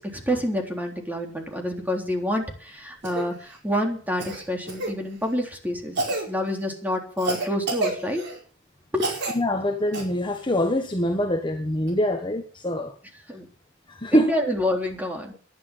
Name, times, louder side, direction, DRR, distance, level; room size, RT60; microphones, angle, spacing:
voice 1, 0.0-6.0 6.3-8.2 8.9-9.1 13.3-13.5 14.1-15.3, equal, 10° right, 3.6 m, -28 dB
Cough, 3.0-3.3 4.2-4.9 5.9-6.3 7.2-8.4 9.0-9.4 9.9-10.0 11.9-12.0, right 2 dB, 65° right, 4.9 m, -28 dB
voice 2, 9.3-12.9 13.9-14.4, left 1 dB, 25° left, 1.4 m, -24 dB
11.5 x 11.0 x 7.4 m
head